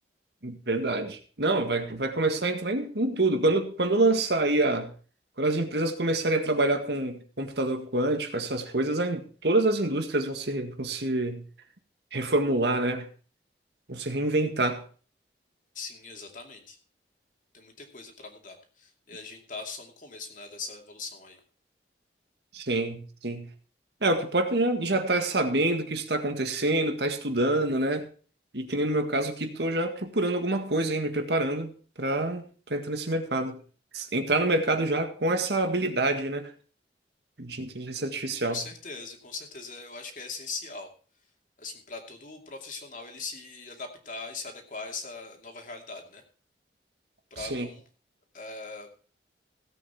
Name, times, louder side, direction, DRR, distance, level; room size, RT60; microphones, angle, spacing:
voice 1, 0.4-4.9 5.4-11.4 12.1-13.1 13.9-14.8 22.5-23.5 24.0-28.1 28.5-32.4 32.7-33.6 33.9-36.5 37.4-38.6 47.4-47.7, right 2 dB, 70° right, 6 dB, 1.8 m, -27 dB
voice 2, 15.7-16.8 17.5-21.4 38.4-40.9 41.6-46.2 47.3-47.8 48.3-48.9, left 4 dB, 45° left, 3 dB, 2.5 m, -40 dB
16.5 x 8.2 x 4.3 m, 0.40 s
head